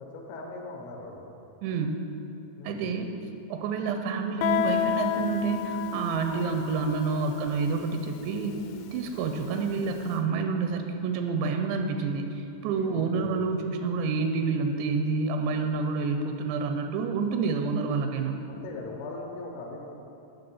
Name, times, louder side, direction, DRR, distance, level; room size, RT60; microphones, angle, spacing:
voice 1, 0.0-1.4 2.6-2.9 10.1-10.2 12.9-13.4 18.5-19.9, left 2 dB, 75° left, 0 dB, 2.6 m, -40 dB
voice 2, 1.6-2.0 2.6-3.1 3.5-8.6 8.9-18.4, right 4 dB, 85° right, 5 dB, 2.8 m, -28 dB
Guitar, 4.4-9.9, left 11 dB, 90° left, 2.8 m, -32 dB
sound 1, 6.0-6.6 8.1-8.9 10.6-11.5 12.5-13.2 14.1-14.4 15.7-15.8, right 1 dB, 40° right, 0.5 m, -51 dB
11.0 x 3.8 x 7.0 m, 2.9 s
omnidirectional pair, 5.1 m